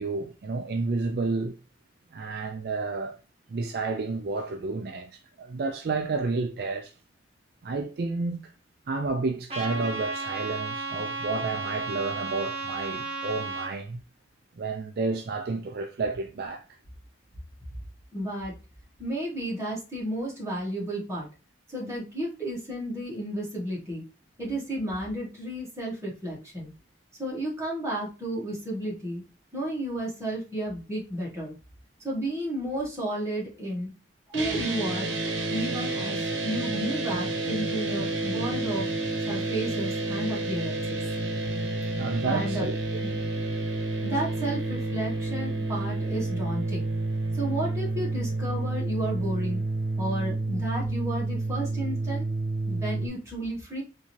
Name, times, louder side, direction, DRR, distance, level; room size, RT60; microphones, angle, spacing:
voice 1, 0.0-1.6 2.1-3.2 3.5-6.9 7.6-8.5 8.9-14.0 14.6-16.6 42.0-42.8, right 3 dB, 55° right, 0.4 m, -30 dB
Trumpet, 9.5-13.7, right 4 dB, 35° right, 1.3 m, -34 dB
voice 2, 18.1-18.5 19.0-21.3 21.7-24.0 24.4-26.7 27.2-29.2 29.5-31.5 32.0-33.9 34.3-35.1 35.5-38.9 39.3-41.0 42.2-42.6 43.0-43.1 44.0-46.9 47.3-49.6 50.0-52.3 52.6-53.8, right 1 dB, 15° right, 1.4 m, -32 dB
sound 1, 34.3-53.1, right 2 dB, 90° right, 0.9 m, -30 dB
3.6 x 2.7 x 3.0 m
head